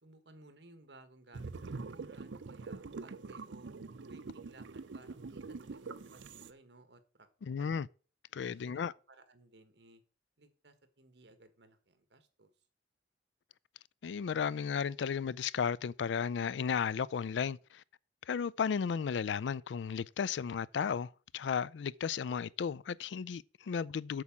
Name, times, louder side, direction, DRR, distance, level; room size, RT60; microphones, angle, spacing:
voice 1, 0.0-3.7 4.0-7.3 7.6-7.8 8.4-10.0 10.4-12.5, right 2 dB, 65° right, 1.4 m, -59 dB
sound 1, 1.3-6.5, right 4 dB, 85° right, 0.6 m, -44 dB
voice 2, 7.4-7.9 8.3-8.9 14.0-17.8 18.3-24.2, left 6 dB, 80° left, 0.4 m, -34 dB
8.2 x 4.8 x 7.2 m
head